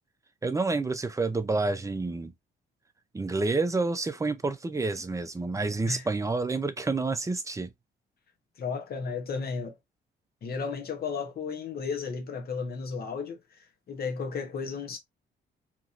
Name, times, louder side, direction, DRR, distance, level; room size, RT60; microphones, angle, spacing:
voice 1, 0.4-2.3 3.1-7.7, right 3 dB, 15° right, 0.5 m, -29 dB
voice 2, 8.6-9.7 10.4-15.0, left 5 dB, 50° left, 1.0 m, -34 dB
2.9 x 2.7 x 2.5 m
cardioid pair, 90°, 20 cm